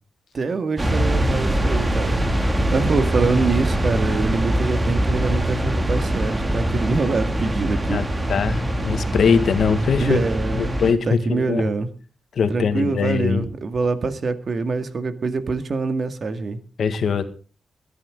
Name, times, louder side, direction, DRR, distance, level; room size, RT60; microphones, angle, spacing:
voice 1, 0.3-2.2 2.7-8.0 10.0-11.9 12.5-16.6, right 4 dB, 55° right, 9 dB, 2.0 m, -24 dB
sound 1, 0.8-10.9, right 1 dB, 20° right, 2.4 m, -23 dB
sound 2, 4.5-10.6, right 3 dB, 85° right, 2.0 m, -42 dB
voice 2, 8.3-10.2 10.5-11.6 12.4-13.4 16.8-17.3, left 6 dB, 70° left, 10 dB, 1.8 m, -21 dB
22.0 x 10.5 x 3.8 m, 0.37 s
cardioid pair, 75°, 0 cm